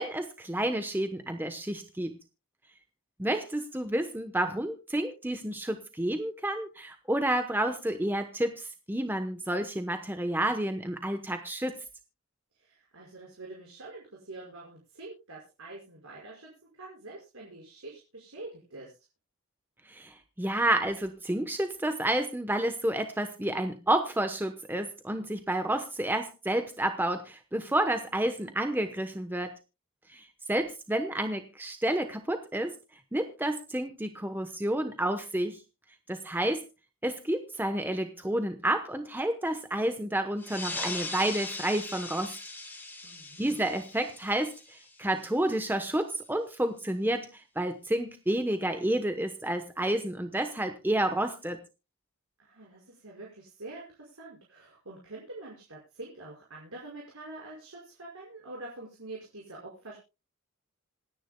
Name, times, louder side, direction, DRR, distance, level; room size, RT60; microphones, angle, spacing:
voice 1, 0.0-2.2 3.2-11.8 19.9-29.5 30.1-32.7 33.1-35.6 36.1-36.6 37.0-42.4 43.4-51.6, right 1 dB, 10° right, 7 dB, 0.9 m, -30 dB
voice 2, 12.5-19.0 28.2-29.0 43.0-43.7 52.4-60.0, right 2 dB, 75° right, -3 dB, 5.6 m, -46 dB
sound 1, 40.4-45.5, left 3 dB, 10° left, 2.0 m, -40 dB
26.5 x 10.0 x 2.2 m, 0.29 s
head